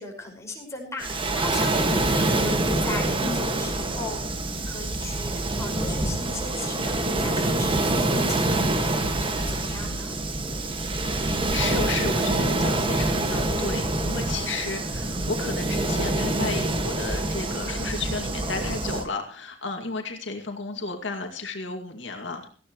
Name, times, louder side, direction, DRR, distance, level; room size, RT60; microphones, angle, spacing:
voice 1, 0.0-10.2, left 2 dB, 15° left, 0 dB, 5.6 m, -38 dB
Waves surf, 1.0-19.1, right 2 dB, 30° right, 1.8 m, -26 dB
voice 2, 11.0-22.5, left 3 dB, 75° left, 3 dB, 2.4 m, -33 dB
18.5 x 15.5 x 3.1 m, 0.41 s
head